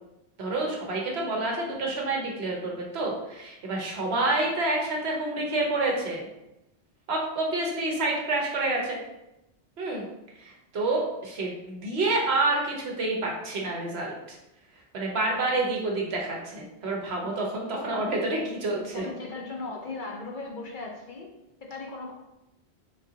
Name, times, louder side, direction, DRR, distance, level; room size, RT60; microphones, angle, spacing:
voice 1, 0.4-6.3 7.1-9.0 9.8-10.1 10.4-14.4 14.9-19.1, right 2 dB, 70° right, -1 dB, 1.1 m, -28 dB
voice 2, 18.9-21.3 21.6-22.2, left 3 dB, 55° left, -1 dB, 0.7 m, -37 dB
3.7 x 3.7 x 2.8 m, 0.90 s
omnidirectional pair, 1.1 m